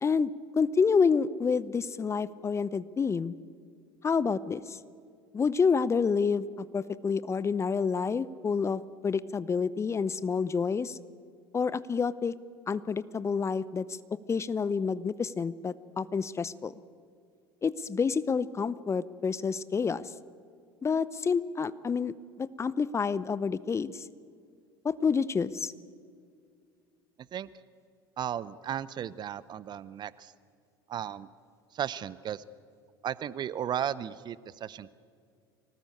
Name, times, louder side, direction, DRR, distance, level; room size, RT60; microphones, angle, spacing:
voice 1, 0.0-3.4 4.0-4.8 5.3-11.0 11.5-12.3 12.7-14.0 14.3-16.7 17.6-20.1 20.8-22.1 22.4-24.0 24.8-25.7, left 5 dB, 20° left, 18 dB, 0.7 m, -28 dB
voice 2, 28.2-30.3 30.9-31.3 31.7-32.4 33.0-34.9, right 9 dB, 35° right, 18 dB, 0.7 m, -35 dB
24.5 x 18.5 x 8.5 m, 2.2 s
figure-of-eight pair, 75°, 13 cm